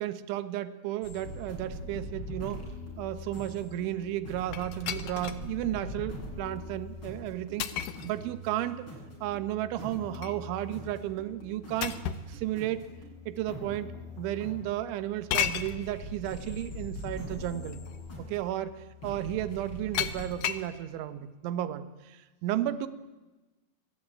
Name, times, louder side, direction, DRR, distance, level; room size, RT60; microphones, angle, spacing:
voice 1, 0.0-2.6 3.0-7.7 8.0-8.9 9.2-12.9 13.3-13.9 14.2-17.8 18.2-18.7 19.0-22.9, right 13 dB, 75° right, 12 dB, 3.5 m, -33 dB
sound 1, 1.0-20.3, left 1 dB, 25° left, 7.3 m, -43 dB
sound 2, 4.5-5.5 6.0-6.1 7.6-8.1 9.8-10.4 11.8-12.3 13.3-13.4 15.3-15.8 17.2-17.3 17.7-18.0 19.9-20.7, left 10 dB, 80° left, 1.9 m, -33 dB
28.0 x 21.5 x 9.0 m, 1.1 s
omnidirectional pair, 5.6 m